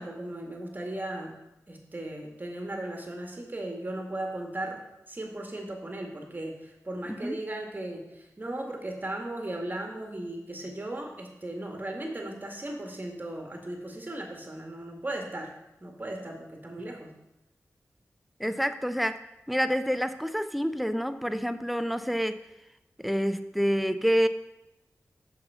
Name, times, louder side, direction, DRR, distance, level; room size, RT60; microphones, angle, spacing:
voice 1, 0.0-1.3 1.7-4.8 5.1-15.5 15.8-17.1, right 1 dB, 30° right, 2 dB, 2.0 m, -37 dB
voice 2, 18.4-19.2 19.5-22.4 23.0-24.3, equal, ahead, 11 dB, 0.6 m, -27 dB
6.6 x 5.8 x 5.6 m, 0.89 s
cardioid pair, 50°, 6 cm